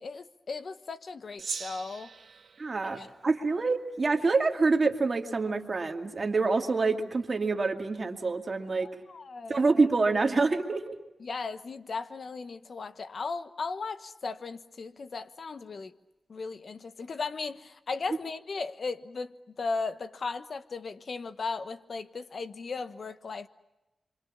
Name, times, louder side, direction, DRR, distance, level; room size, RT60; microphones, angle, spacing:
voice 1, 0.0-2.1 3.0-3.1 8.8-9.6 11.2-15.9 16.3-23.5, left 4 dB, 55° left, 11 dB, 1.2 m, -36 dB
Gong, 1.4-4.0, right 5 dB, 70° right, 1.4 m, -42 dB
voice 2, 2.6-8.9 9.5-11.0, right 3 dB, 40° right, 4 dB, 2.3 m, -26 dB
30.0 x 25.0 x 7.3 m, 1.0 s
wide cardioid pair, 155°, 0 cm